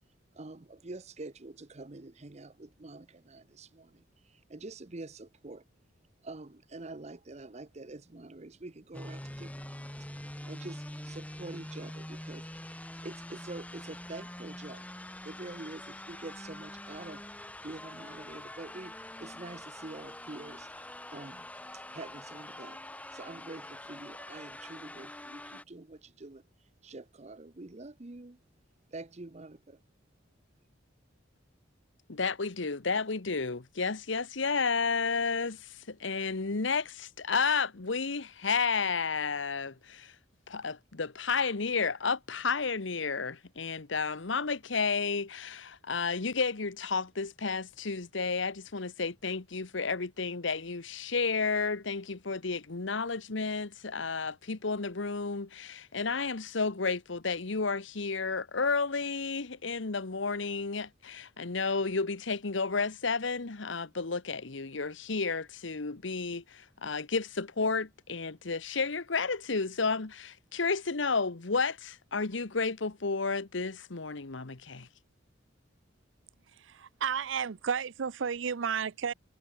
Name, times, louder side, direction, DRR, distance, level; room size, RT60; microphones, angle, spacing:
voice 1, 0.3-5.6 6.2-14.9 15.2-17.2 17.6-20.7 21.1-21.5 21.7-26.4 26.8-28.4 28.9-29.8, right 2 dB, 35° right, 0.9 m, -46 dB
sound 1, 8.9-25.6, left 1 dB, 10° left, 1.5 m, -45 dB
voice 2, 32.1-40.1 40.5-74.9, left 4 dB, 75° left, 1.2 m, -32 dB
voice 3, 76.6-79.1, right 7 dB, 75° right, 0.6 m, -32 dB
head